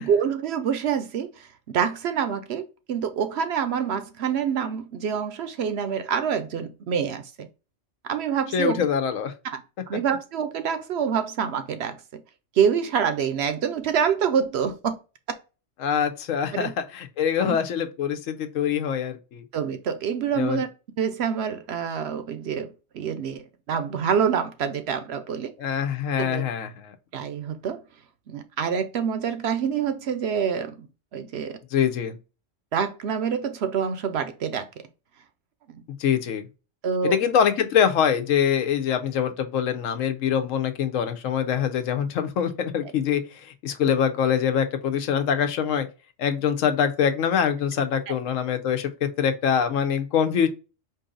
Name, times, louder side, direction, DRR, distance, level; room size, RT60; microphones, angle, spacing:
voice 1, 0.0-7.5 8.1-8.8 9.5-9.6 9.9-12.2 12.6-15.0 16.5-16.7 17.4-17.6 19.5-20.7 21.0-23.4 23.7-25.5 26.2-26.4 27.1-27.8 28.3-30.9 31.1-31.6 32.7-34.7 35.7-35.8 36.8-37.2 48.1-48.2, right 7 dB, 65° right, 0.8 m, -26 dB
voice 2, 8.5-9.3 15.8-19.4 20.3-20.6 25.6-26.9 31.7-32.2 36.0-36.4 37.0-45.9 46.2-50.5, left 8 dB, 85° left, 1.0 m, -24 dB
4.6 x 2.7 x 3.7 m
omnidirectional pair, 1.3 m